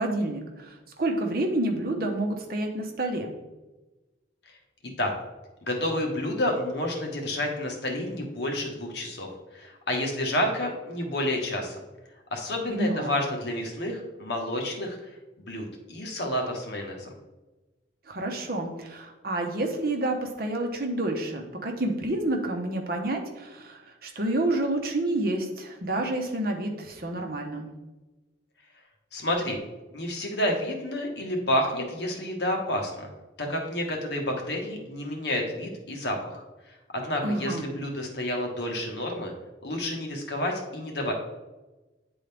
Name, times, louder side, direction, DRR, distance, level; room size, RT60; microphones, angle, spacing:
voice 1, 0.0-3.3 12.7-13.1 18.1-27.7 37.2-37.6, right 1 dB, 50° right, 2 dB, 1.0 m, -29 dB
voice 2, 5.6-9.3 9.5-11.8 12.3-15.0 15.4-17.1 29.1-29.6 29.9-33.1 33.4-36.4 36.9-39.3 39.6-41.1, left 1 dB, 65° left, 1 dB, 1.3 m, -29 dB
9.4 x 3.9 x 3.4 m, 1.1 s
head